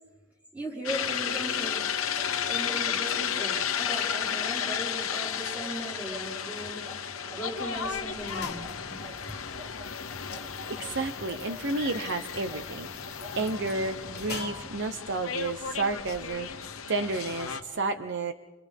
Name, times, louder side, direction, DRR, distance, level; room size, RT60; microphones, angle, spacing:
voice 1, 0.5-1.8 2.5-6.9 7.3-8.7, right 1 dB, 5° right, -5 dB, 5.3 m, -37 dB
sound 1, 0.8-17.6, left 8 dB, 85° left, 1.1 m, -33 dB
sound 2, 1.5-10.9 11.3-14.4, right 3 dB, 30° right, 5.5 m, -48 dB
sound 3, 7.6-16.9, left 5 dB, 50° left, 1.6 m, -46 dB
voice 2, 10.7-18.3, right 3 dB, 60° right, 8 dB, 0.9 m, -31 dB
30.0 x 27.0 x 3.6 m, 1.2 s
head